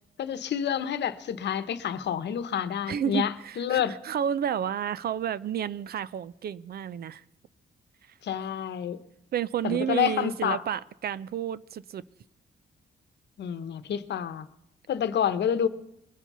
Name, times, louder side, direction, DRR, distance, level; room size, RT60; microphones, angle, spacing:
voice 1, 0.2-4.0 8.2-9.0 9.6-10.6 13.4-14.5 14.9-15.7, left 9 dB, 75° left, 12 dB, 1.0 m, -28 dB
voice 2, 2.9-7.2 9.3-12.0, right 9 dB, 60° right, 19 dB, 0.5 m, -31 dB
22.0 x 7.4 x 5.5 m, 0.85 s
wide cardioid pair, 170°, 18 cm